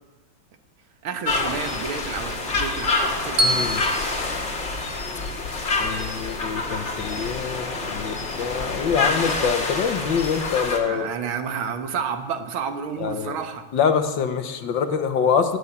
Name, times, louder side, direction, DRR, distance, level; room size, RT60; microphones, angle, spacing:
voice 1, 1.0-3.7 10.8-13.7, right 6 dB, 85° right, 8 dB, 2.1 m, -31 dB
sound 1, 1.3-10.8, left 3 dB, 35° left, 1.9 m, -27 dB
voice 2, 3.4-3.8 5.8-11.1 13.0-13.4 13.7-15.6, left 6 dB, 70° left, 8 dB, 1.8 m, -25 dB
Bell, 3.4-5.6, equal, 50° right, 1.8 m, -27 dB
17.5 x 8.5 x 9.7 m, 1.2 s
omnidirectional pair, 2.2 m